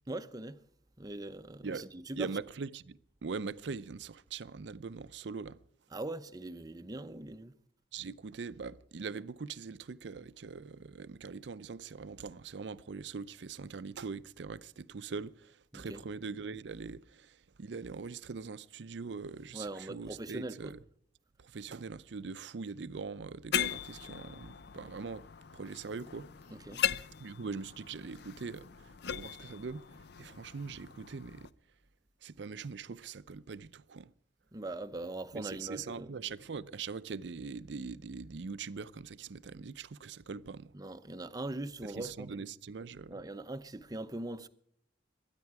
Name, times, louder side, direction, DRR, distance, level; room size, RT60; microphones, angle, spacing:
voice 1, 0.1-0.6 1.0-2.3 5.9-7.5 15.7-16.0 19.5-20.7 26.5-26.8 34.5-36.1 40.7-42.4 43.1-44.5, right 2 dB, 20° right, 0.6 m, -41 dB
voice 2, 2.2-5.6 7.9-20.8 21.4-25.2 25.5-26.3 27.2-29.8 30.2-31.5 32.2-34.1 35.3-40.7 41.8-43.1, right 5 dB, 65° right, 0.5 m, -42 dB
sound 1, 23.5-31.5, left 10 dB, 60° left, 0.5 m, -39 dB
22.5 x 9.8 x 4.7 m
head